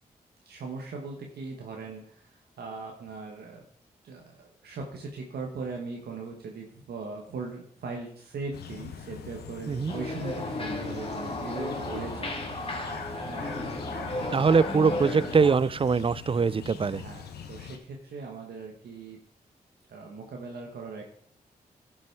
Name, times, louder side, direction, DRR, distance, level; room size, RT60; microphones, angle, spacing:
voice 1, 0.4-3.6 4.0-13.0 13.3-13.8 14.4-14.6 16.8-19.2 19.9-21.1, right 4 dB, 80° right, 1 dB, 1.3 m, -40 dB
sound 1, 8.5-17.8, left 7 dB, 90° left, 0.9 m, -43 dB
sound 2, 9.9-15.6, left 1 dB, 35° left, 2.2 m, -34 dB
voice 2, 14.3-17.0, right 5 dB, 35° right, 20 dB, 0.4 m, -23 dB
11.5 x 6.2 x 4.6 m, 0.62 s
supercardioid pair, 45°, 16 cm